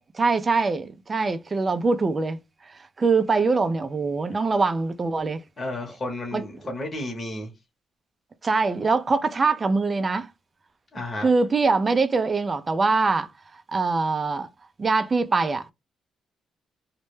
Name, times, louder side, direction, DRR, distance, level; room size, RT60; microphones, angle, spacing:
voice 1, 0.1-2.4 3.0-5.4 6.3-6.4 8.4-10.3 11.2-13.3 13.7-14.5 14.8-15.6, right 4 dB, 30° right, 0.3 m, -23 dB
voice 2, 5.6-7.5 10.9-11.3, left 1 dB, 35° left, 0.9 m, -32 dB
2.1 x 2.1 x 3.0 m
cardioid pair, 90°, 0 cm